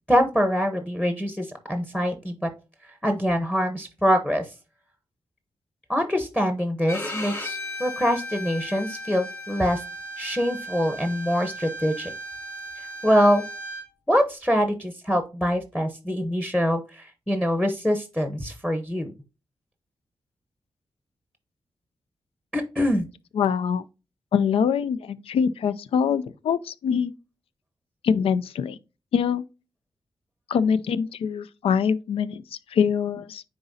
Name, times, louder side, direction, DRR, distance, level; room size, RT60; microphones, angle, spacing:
voice 1, 0.1-2.5 3.0-4.4 5.9-9.8 10.2-12.1 13.0-13.4 14.1-19.1 22.5-23.1, equal, 5° left, 0.9 m, -24 dB
Bowed string instrument, 6.9-13.8, equal, 30° left, 2.8 m, -36 dB
voice 2, 23.3-23.9 24.3-27.1 28.0-28.8 29.1-29.4 30.5-32.4 32.7-33.4, left 7 dB, 90° left, 0.4 m, -24 dB
9.6 x 3.9 x 2.6 m
cardioid pair, 70°, 9 cm